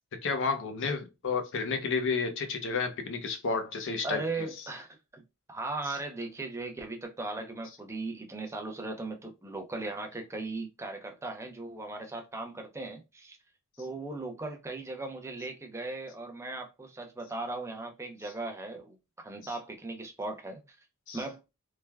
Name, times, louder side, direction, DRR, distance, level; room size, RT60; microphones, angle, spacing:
voice 1, 0.2-4.2 21.1-21.2, left 4 dB, 60° left, 0.6 m, -31 dB
voice 2, 4.0-5.2 5.5-13.4 13.8-19.0 19.2-20.6 21.1-21.4, right 2 dB, 10° right, 0.5 m, -38 dB
3.2 x 2.2 x 2.2 m
head